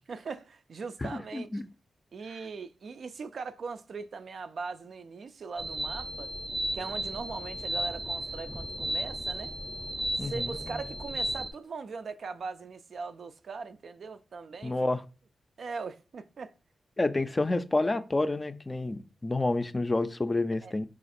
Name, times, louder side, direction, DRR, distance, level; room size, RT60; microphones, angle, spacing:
voice 1, 0.1-1.6 2.1-6.3 6.7-9.5 10.2-14.9 15.6-16.5 20.6-20.7, right 4 dB, 70° right, 0.3 m, -40 dB
voice 2, 1.0-1.6 10.2-10.5 14.6-15.0 17.0-20.9, left 2 dB, 30° left, 0.4 m, -29 dB
sound 1, 5.6-11.5, right 1 dB, 10° right, 0.6 m, -34 dB
4.1 x 2.4 x 4.1 m
cardioid pair, 50°, 0 cm